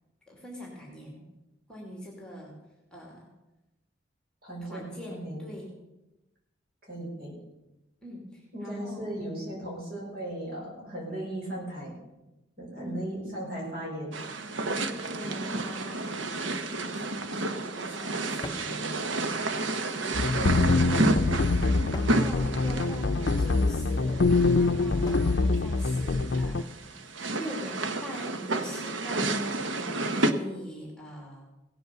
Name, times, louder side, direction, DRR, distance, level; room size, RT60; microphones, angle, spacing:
voice 1, 0.3-1.3 1.7-2.6 2.9-3.3 4.6-5.7 8.0-9.2 12.8-13.1 14.6-19.2 21.1-21.4 21.9-27.0 27.3-29.4 29.7-31.5, equal, 5° left, -1 dB, 2.5 m, -42 dB
voice 2, 4.4-5.4 6.8-7.3 8.5-11.9 12.6-14.2 20.3-20.6 21.4-21.6, right 1 dB, 50° right, -3 dB, 5.9 m, -37 dB
sound 1, 14.1-30.3, right 2 dB, 85° right, 0.9 m, -31 dB
sound 2, 17.1-17.5 18.4-18.8 20.3-20.7 21.9-22.3 23.7-24.1 25.0-25.4, left 2 dB, 20° left, 0.7 m, -43 dB
sound 3, 20.1-26.6, left 3 dB, 65° left, 0.6 m, -25 dB
17.0 x 8.1 x 6.8 m, 0.97 s
head